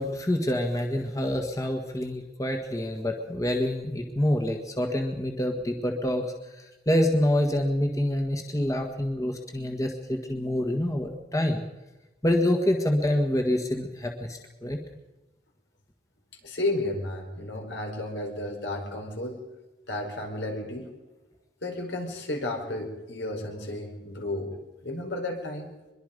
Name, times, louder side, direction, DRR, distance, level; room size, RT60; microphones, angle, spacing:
voice 1, 0.0-11.6 12.2-14.8, left 1 dB, 20° left, 3 dB, 1.7 m, -27 dB
voice 2, 16.4-19.4 19.9-20.9 21.6-24.5 24.8-25.7, left 1 dB, 80° left, 2 dB, 5.0 m, -32 dB
24.0 x 22.0 x 5.3 m, 1.1 s
head